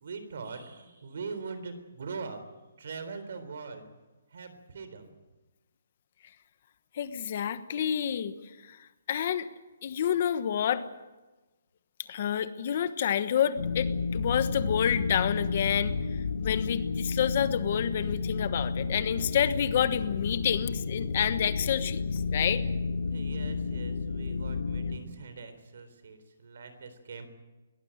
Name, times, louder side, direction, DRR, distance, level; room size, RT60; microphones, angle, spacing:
voice 1, 0.0-2.4 2.8-3.8 4.3-5.1 23.1-27.3, right 4 dB, 50° right, 10 dB, 3.8 m, -42 dB
voice 2, 7.0-8.3 8.7-8.8 9.1-9.5 9.8-10.8 12.1-15.9 16.4-22.6, left 9 dB, 35° left, 12 dB, 1.2 m, -28 dB
sound 1, 13.6-25.0, left 4 dB, 55° left, 2.3 m, -31 dB
22.0 x 18.5 x 9.1 m, 1.2 s
hypercardioid pair, 180°, 0 cm